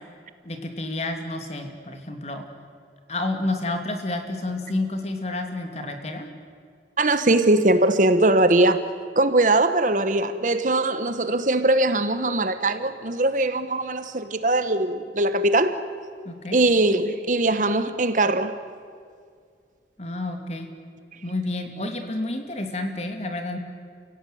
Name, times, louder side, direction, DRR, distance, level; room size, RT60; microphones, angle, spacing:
voice 1, 0.4-2.5 3.1-6.3 16.2-16.6 20.0-20.7 21.2-23.6, left 2 dB, 40° left, 2.7 m, -30 dB
voice 2, 7.0-8.9 9.1-15.8 16.5-18.5, right 2 dB, 45° right, 1.2 m, -21 dB
29.5 x 17.0 x 9.3 m
head